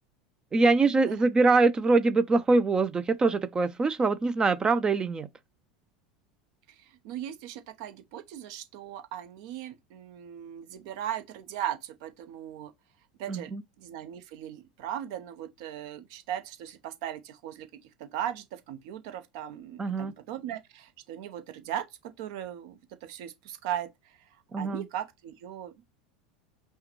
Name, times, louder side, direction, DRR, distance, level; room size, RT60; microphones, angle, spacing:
voice 1, 0.5-5.3 13.3-13.6 19.8-20.1 24.5-24.8, right 3 dB, 20° right, 0.4 m, -24 dB
voice 2, 6.7-12.7 13.2-13.5 13.8-17.7 18.0-24.2 24.6-25.7, right 10 dB, 60° right, 0.8 m, -38 dB
5.5 x 2.2 x 3.0 m
hypercardioid pair, 85°, 3 cm